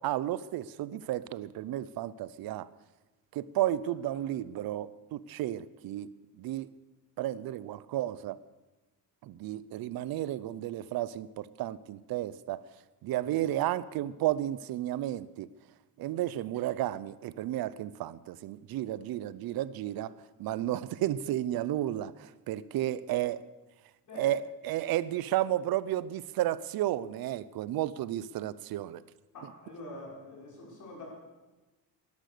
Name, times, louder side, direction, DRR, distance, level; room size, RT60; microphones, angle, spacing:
voice 1, 0.0-2.7 3.3-6.7 7.2-8.4 9.2-12.6 13.0-15.5 16.0-20.1 20.4-23.4 24.2-29.0, right 13 dB, 65° right, 0.6 m, -32 dB
voice 2, 29.3-31.2, left 1 dB, 50° left, 5.4 m, -45 dB
18.5 x 12.0 x 6.7 m
cardioid pair, 175°, 39 cm